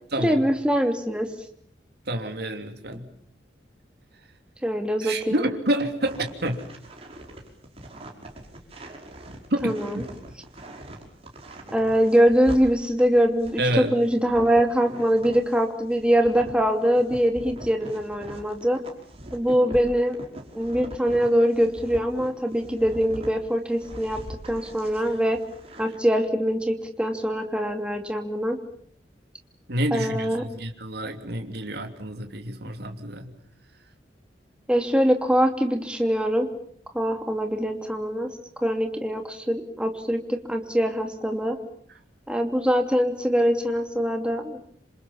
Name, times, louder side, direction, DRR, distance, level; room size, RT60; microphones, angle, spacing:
voice 1, 0.2-1.3 2.9-3.0 4.6-5.4 9.6-10.0 11.7-18.8 19.3-20.2 20.5-24.2 24.5-25.4 25.8-28.6 29.9-30.4 34.7-36.5 36.9-38.3 38.6-41.6 42.3-44.6, equal, 5° right, 5 dB, 2.9 m, -23 dB
voice 2, 2.1-3.1 5.0-6.6 9.5-10.0 13.6-14.0 29.7-33.3, right 1 dB, 60° right, 5 dB, 3.1 m, -28 dB
sound 1, 6.0-15.6 15.9-23.3 23.7-26.0, right 1 dB, 35° right, 5.2 m, -42 dB
27.5 x 27.0 x 7.3 m, 0.63 s
head